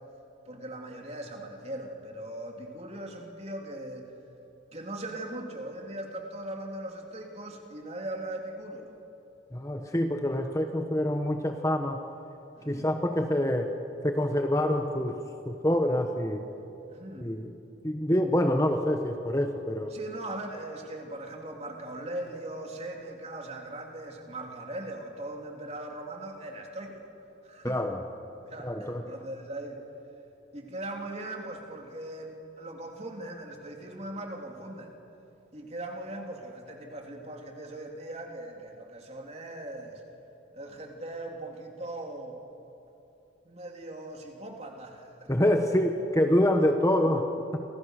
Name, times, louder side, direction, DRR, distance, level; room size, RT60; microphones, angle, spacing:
voice 1, 0.5-4.1 4.7-8.9 12.6-12.9 16.9-17.3 19.9-27.1 27.4-27.8 28.5-29.8 30.5-34.9 35.5-40.0 40.5-42.4 43.5-45.3 46.6-46.8, right 1 dB, 35° right, 1 dB, 3.4 m, -39 dB
voice 2, 9.5-12.0 12.7-13.7 14.0-15.2 15.5-16.4 17.2-17.5 17.8-19.9 27.6-28.0 28.6-29.0 45.3-47.6, left 1 dB, 15° left, 4 dB, 1.2 m, -26 dB
29.5 x 26.5 x 6.6 m, 2.9 s
head